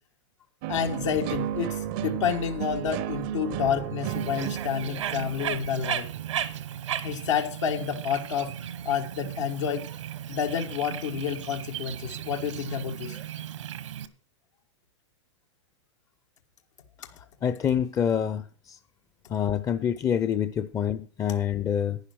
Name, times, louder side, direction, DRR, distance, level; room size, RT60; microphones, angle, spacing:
sound 1, 0.6-6.6, right 11 dB, 50° right, 0.6 m, -34 dB
voice 1, 0.7-6.1 7.0-8.5 8.8-9.9 10.3-13.2, left 7 dB, 80° left, 1.5 m, -29 dB
Bird, 4.1-14.1, right 10 dB, 80° right, 1.2 m, -36 dB
voice 2, 17.4-18.4 18.7-18.8 19.3-22.0, left 9 dB, 20° left, 0.6 m, -26 dB
11.5 x 9.8 x 4.6 m
hypercardioid pair, 120°, 15 cm